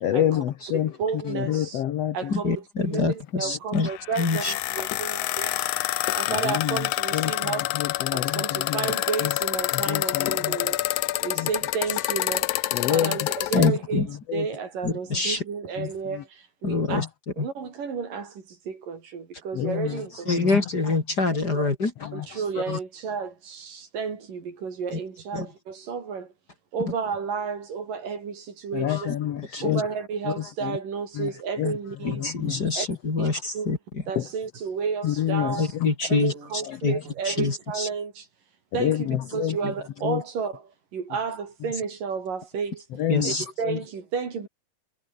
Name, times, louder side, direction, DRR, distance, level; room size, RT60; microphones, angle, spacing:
voice 1, 0.0-0.9 1.2-2.3 2.9-3.1 6.3-6.8 7.1-8.9 9.2-9.3 9.7-10.7 11.4-11.5 12.7-13.2 13.5-13.8 14.3-14.5 15.8-16.2 16.9-17.1 19.5-20.0 20.3-20.6 22.0-22.8 28.7-29.8 30.4-30.8 31.2-31.3 31.6-31.7 32.0-32.7 34.2-34.3 35.0-35.9 36.7-37.0 38.7-39.6 40.0-40.2 43.0-43.4 43.6-43.8, left 11 dB, 75° left, 1.4 m, -28 dB
voice 2, 0.7-1.8 2.1-5.7 6.1-7.7 8.1-10.8 11.2-17.0 17.4-20.5 21.5-21.6 22.1-26.3 26.7-29.2 29.6-32.3 32.7-32.9 33.2-33.3 33.5-33.7 34.1-35.7 36.1-38.3 38.7-42.8 43.2-44.5, right 6 dB, 60° right, 5.4 m, -32 dB
voice 3, 2.3-3.9 4.2-4.5 13.5-14.1 14.8-15.4 16.6-17.0 17.4-17.5 20.3-21.9 25.3-25.5 29.5-29.8 32.0-33.8 35.6-36.3 36.8-37.0 37.2-37.9 43.1-43.4, left 3 dB, 25° left, 3.0 m, -25 dB
sound 1, 3.7-13.7, left 16 dB, 90° left, 1.6 m, -27 dB
omnidirectional pair, 4.5 m